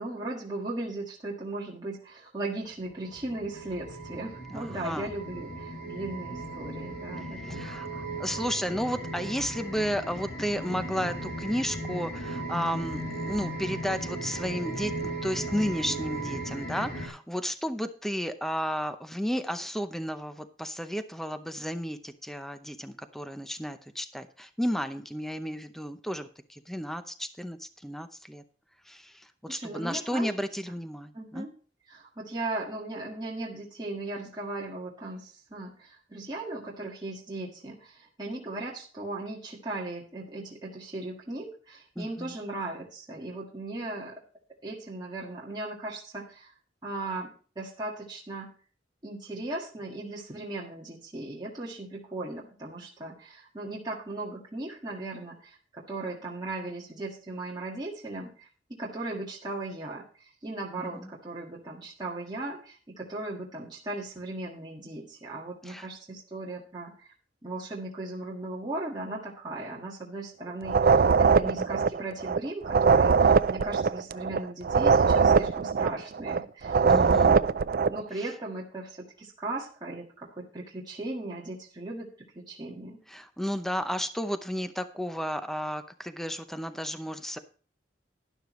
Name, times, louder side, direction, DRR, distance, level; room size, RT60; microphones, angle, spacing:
voice 1, 0.0-7.7 29.5-30.3 31.1-31.5 31.9-44.2 44.6-46.5 46.8-48.5 49.0-67.1 67.4-77.5 77.9-83.0, right 2 dB, 25° right, -4 dB, 1.8 m, -37 dB
sound 1, 2.8-17.1, right 1 dB, 60° left, 3.0 m, -37 dB
voice 2, 4.5-5.1 7.4-28.4 28.9-31.5 42.0-42.4 60.8-61.1 65.6-65.9 71.5-71.7 76.8-77.4 83.1-87.4, equal, ahead, 9 dB, 0.7 m, -33 dB
sound 2, 70.6-78.0, right 5 dB, 55° right, 0.4 m, -22 dB
12.0 x 11.0 x 3.1 m, 0.40 s
head